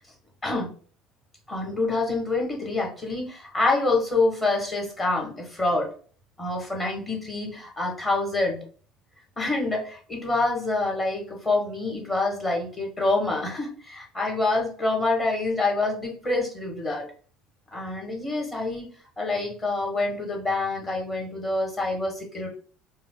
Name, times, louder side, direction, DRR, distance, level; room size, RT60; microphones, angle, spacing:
voice 1, 1.5-5.9 6.4-8.6 9.4-17.1 17.7-18.9 19.2-22.5, left 2 dB, 20° left, 0 dB, 2.0 m, -26 dB
4.9 x 2.3 x 3.9 m, 0.42 s
figure-of-eight pair, 60°, 0 cm